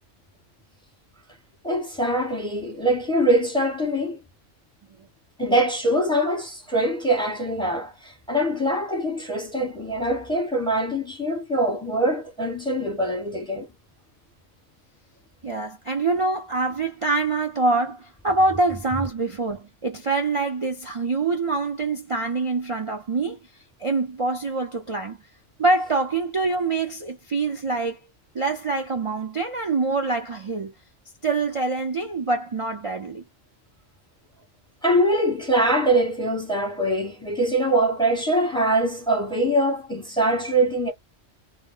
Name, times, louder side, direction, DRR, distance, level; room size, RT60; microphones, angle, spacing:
voice 1, 1.6-4.2 5.4-13.7 34.8-40.9, right 1 dB, 5° left, 0.8 m, -23 dB
voice 2, 15.4-23.4 23.8-25.2 25.6-28.0 28.3-30.7 31.2-33.2, right 3 dB, 55° right, 0.3 m, -25 dB
2.1 x 2.1 x 3.7 m
omnidirectional pair, 1.3 m